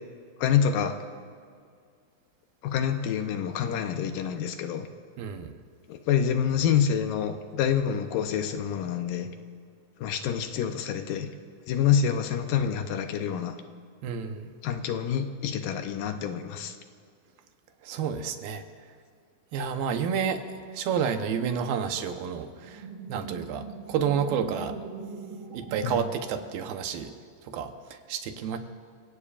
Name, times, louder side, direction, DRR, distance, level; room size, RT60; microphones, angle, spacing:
voice 1, 0.4-1.0 2.6-4.9 5.9-9.3 10.0-11.3 11.7-13.6 14.6-16.7 25.8-26.0, left 8 dB, 80° left, 7 dB, 2.3 m, -27 dB
voice 2, 5.2-5.5 14.0-14.5 17.8-18.6 19.5-20.4 20.7-24.7 25.5-27.1 27.5-28.6, right 7 dB, 90° right, 6 dB, 2.8 m, -30 dB
sound 1, 22.5-27.0, right 4 dB, 60° right, 1.7 m, -42 dB
29.0 x 17.0 x 2.5 m, 2.2 s
omnidirectional pair, 4.1 m